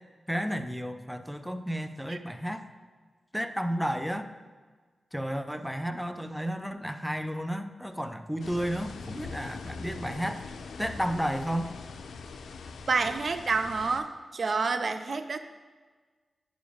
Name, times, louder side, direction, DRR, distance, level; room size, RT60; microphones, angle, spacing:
voice 1, 0.3-2.6 3.3-4.3 5.1-10.4 10.8-11.7, equal, ahead, 9 dB, 0.6 m, -32 dB
sound 1, 8.4-14.0, left 4 dB, 85° left, 0.4 m, -42 dB
voice 2, 12.9-15.4, right 4 dB, 60° right, 10 dB, 0.4 m, -28 dB
9.9 x 5.1 x 3.5 m, 1.4 s
cardioid pair, 45°, 0 cm